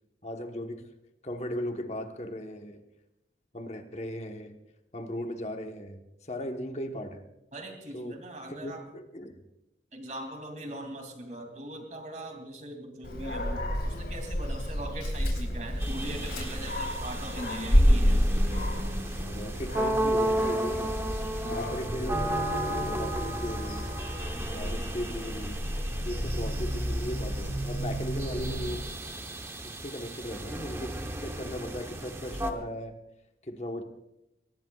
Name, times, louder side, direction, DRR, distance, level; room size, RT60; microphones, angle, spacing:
voice 1, 0.2-0.9 1.2-2.8 3.5-4.6 4.9-7.2 7.9-8.2 8.5-9.4 19.2-21.0 21.5-23.9 24.5-25.6 26.0-28.9 29.6-33.0 33.4-33.8, equal, 35° left, 4 dB, 1.3 m, -37 dB
voice 2, 7.5-8.8 9.9-18.2 21.4-21.8, right 1 dB, 40° right, 4 dB, 2.8 m, -40 dB
Dog, 13.0-28.8, equal, 65° left, 4.4 m, -30 dB
sound 1, 15.8-32.5, right 1 dB, 15° right, 1.0 m, -34 dB
22.5 x 19.0 x 2.4 m, 0.92 s
head